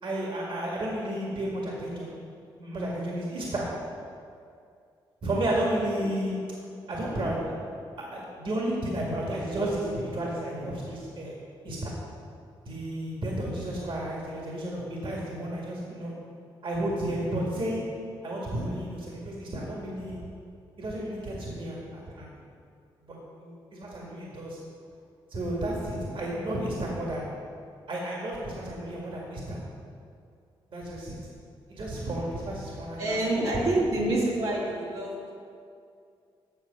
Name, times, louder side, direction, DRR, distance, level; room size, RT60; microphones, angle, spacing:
voice 1, 0.0-2.1 2.5-3.7 5.2-6.4 6.9-7.5 8.1-11.4 11.6-11.9 12.7-16.1 16.6-17.9 18.2-20.2 20.8-22.3 23.1-24.6 25.3-27.3 27.9-29.6 30.7-31.3 31.7-33.2 33.5-33.6, right 1 dB, 60° right, -4 dB, 2.0 m, -32 dB
voice 2, 33.0-35.3, right 1 dB, 80° right, -7 dB, 2.3 m, -27 dB
8.0 x 7.0 x 5.3 m, 2.4 s
supercardioid pair, 55°, 10 cm